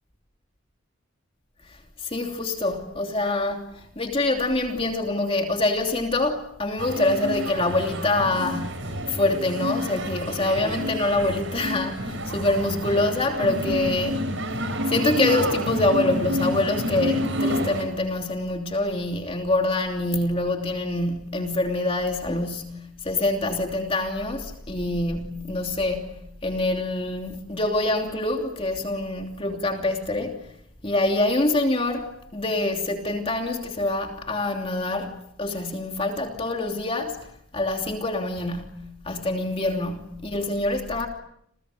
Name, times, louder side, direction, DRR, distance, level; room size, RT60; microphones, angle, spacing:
voice 1, 1.7-14.3 14.9-30.4 30.8-37.3 37.5-41.1, left 2 dB, 30° left, 3.0 m, -25 dB
sound 1, 6.8-17.8, equal, 70° right, 6.4 m, -29 dB
29.5 x 29.0 x 6.7 m
head